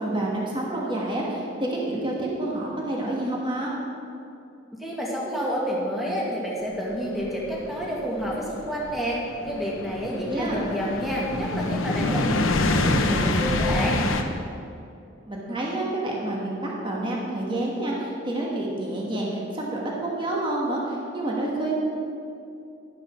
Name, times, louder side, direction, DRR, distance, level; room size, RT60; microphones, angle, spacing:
voice 1, 0.0-3.7 10.3-10.6 15.3-21.7, right 1 dB, 25° right, -3 dB, 1.8 m, -28 dB
voice 2, 4.8-9.2 9.4-14.0, equal, ahead, -5 dB, 2.1 m, -29 dB
sound 1, 7.2-14.2, left 2 dB, 90° left, 0.9 m, -26 dB
12.0 x 10.5 x 4.6 m, 2.6 s
head